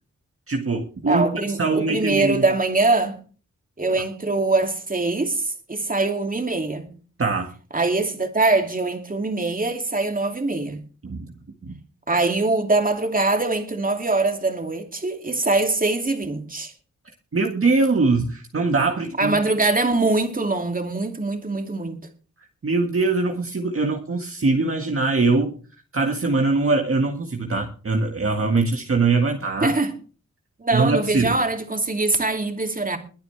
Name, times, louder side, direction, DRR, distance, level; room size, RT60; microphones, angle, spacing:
voice 1, 0.5-2.4 7.2-7.5 11.0-11.3 11.6-11.8 17.3-19.4 22.6-25.5 25.9-29.7 30.7-31.4, right 3 dB, 50° right, 1.8 m, -22 dB
voice 2, 1.1-3.2 3.8-6.9 7.7-10.8 12.1-16.7 19.2-22.0 29.6-29.9 30.6-33.0, right 3 dB, 30° right, 2.6 m, -23 dB
22.0 x 9.2 x 3.4 m
wide cardioid pair, 100°, 29 cm